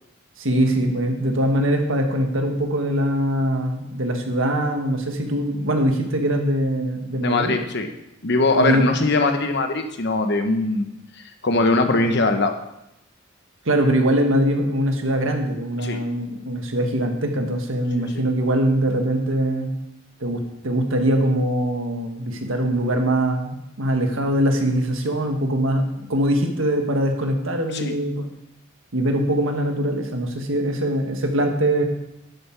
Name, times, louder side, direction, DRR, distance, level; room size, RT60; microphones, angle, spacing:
voice 1, 0.4-7.6 8.5-8.8 13.6-19.7 20.2-28.3 28.9-31.8, right 1 dB, 80° right, 4 dB, 1.6 m, -22 dB
voice 2, 7.2-7.9 8.2-10.9 11.1-12.6 15.8-16.0 27.7-27.9, left 2 dB, 60° left, 6 dB, 1.1 m, -21 dB
11.5 x 7.4 x 4.7 m, 0.84 s
head